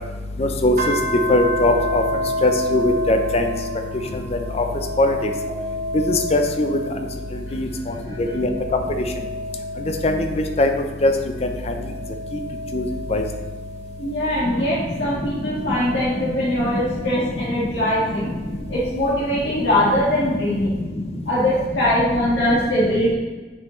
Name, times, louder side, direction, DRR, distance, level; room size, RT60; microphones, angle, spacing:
sound 1, 0.8-7.5 7.9-10.8 11.4-14.2 15.0-17.4 18.8-19.8, left 1 dB, 45° right, 1.0 m, -30 dB
voice 1, 1.3-2.0 2.4-3.4 5.0-5.1 6.3-6.8 7.5-7.7 8.4-8.5 10.0-10.1 10.6-10.7 11.0-11.1 12.7-12.8 13.1-13.2, left 2 dB, 35° left, 5 dB, 0.5 m, -18 dB
voice 2, 7.5-8.4 14.0-18.4 18.7-20.8 21.3-23.1, left 1 dB, 85° left, -8 dB, 1.7 m, -22 dB
6.9 x 5.6 x 3.1 m, 1.3 s
head